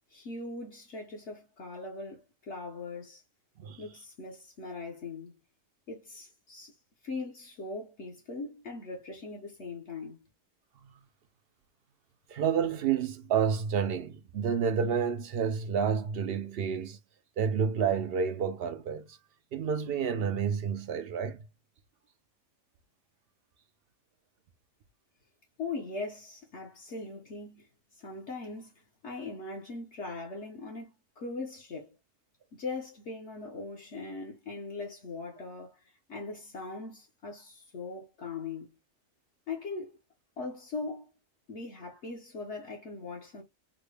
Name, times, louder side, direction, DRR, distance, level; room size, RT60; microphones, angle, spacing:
voice 1, 0.1-3.2 3.8-5.3 5.9-6.8 7.0-10.3 25.6-27.7 27.9-28.7 29.0-32.0 32.5-35.8 36.1-38.7 39.5-39.9 40.4-41.1 41.5-43.4, left 3 dB, 60° left, 1.1 m, -40 dB
voice 2, 12.3-17.0 17.4-19.2 19.5-21.4, right 7 dB, 65° right, 0.6 m, -29 dB
3.8 x 2.1 x 3.2 m
omnidirectional pair, 1.4 m